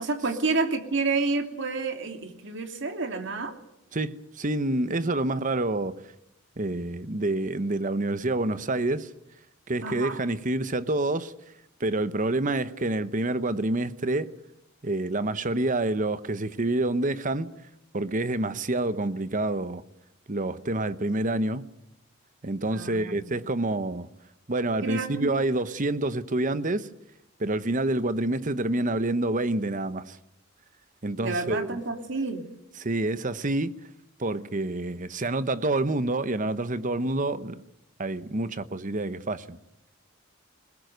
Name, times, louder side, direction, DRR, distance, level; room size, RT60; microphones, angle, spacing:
voice 1, 0.0-3.6 9.8-10.2 22.7-23.3 24.8-25.3 31.2-32.4, right 3 dB, 60° right, 2.7 m, -29 dB
voice 2, 3.9-6.0 6.6-9.1 9.7-11.3 11.8-14.3 14.8-17.5 17.9-19.8 20.3-21.6 22.4-24.1 24.5-26.9 27.4-30.2 31.0-31.8 32.8-33.8 34.2-37.6 38.0-39.6, right 2 dB, 40° right, 1.0 m, -27 dB
21.0 x 20.5 x 8.0 m
head